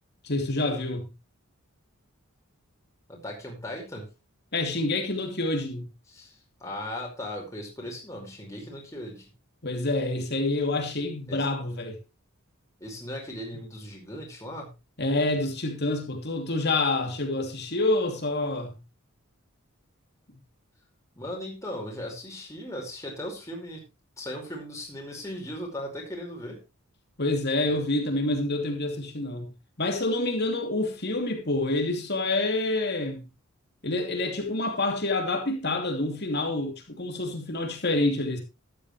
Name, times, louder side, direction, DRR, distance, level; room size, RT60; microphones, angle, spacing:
voice 1, 0.2-1.1 4.5-5.9 9.6-12.0 15.0-18.8 27.2-29.4 29.8-33.3 33.8-38.4, left 2 dB, 50° left, 2.9 m, -27 dB
voice 2, 3.1-4.1 6.1-9.3 11.3-11.5 12.8-14.7 21.1-23.8 24.2-26.6, left 1 dB, 15° left, 5.0 m, -37 dB
13.5 x 12.0 x 3.2 m
head